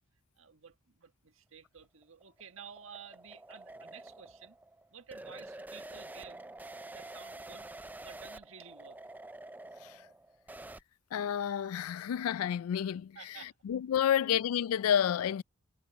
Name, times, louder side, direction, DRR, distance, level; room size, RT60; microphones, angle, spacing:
voice 1, 0.4-4.5 4.9-6.4 6.9-7.7 8.0-9.0 13.1-13.5, right 7 dB, 65° right, 1.6 m, -52 dB
sound 1, 1.8-10.8, right 2 dB, 10° right, 0.3 m, -48 dB
voice 2, 11.1-15.4, left 9 dB, 80° left, 0.3 m, -30 dB
head